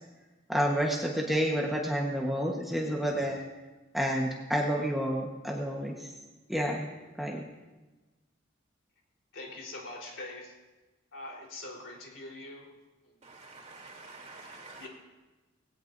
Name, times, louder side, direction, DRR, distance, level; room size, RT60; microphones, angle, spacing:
voice 1, 0.5-3.4 3.9-6.1 6.5-7.4, equal, ahead, -2 dB, 1.3 m, -30 dB
voice 2, 9.3-10.5 11.1-12.7 14.8-14.9, left 2 dB, 70° left, -1 dB, 4.0 m, -43 dB
voice 3, 13.2-14.9, right 3 dB, 35° right, 0 dB, 3.0 m, -48 dB
19.5 x 17.5 x 2.7 m, 1.2 s
head